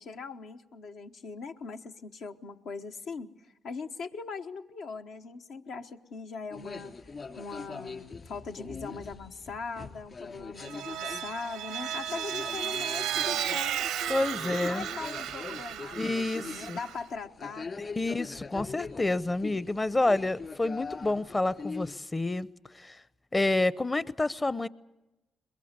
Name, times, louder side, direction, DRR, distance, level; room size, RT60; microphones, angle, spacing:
voice 1, 0.0-6.9 7.3-14.2 14.6-17.7, left 4 dB, 75° left, 1.2 m, -40 dB
sound 1, 6.5-21.9, left 4 dB, 45° left, 3.1 m, -42 dB
Vehicle, 10.6-17.0, right 10 dB, 90° right, 0.7 m, -34 dB
voice 2, 14.1-14.8 16.0-16.8 17.8-22.5 22.7-23.0 23.3-24.7, left 2 dB, 25° left, 0.7 m, -29 dB
22.0 x 21.5 x 8.1 m
supercardioid pair, 60°, 0 cm